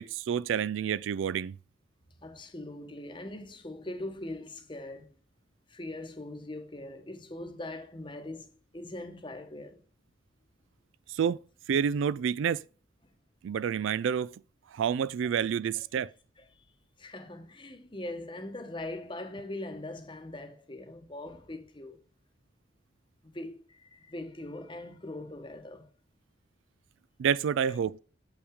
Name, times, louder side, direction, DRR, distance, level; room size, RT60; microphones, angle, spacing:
voice 1, 0.0-1.6 11.1-11.4 11.7-12.6 13.4-14.4 14.7-16.1 27.2-28.0, right 7 dB, 80° right, 0.3 m, -28 dB
voice 2, 2.2-5.2 5.7-9.8 15.8-15.9 16.4-16.5 17.0-22.0 23.3-25.9 27.7-27.8, left 1 dB, 25° left, 1.0 m, -41 dB
8.0 x 5.8 x 3.6 m
head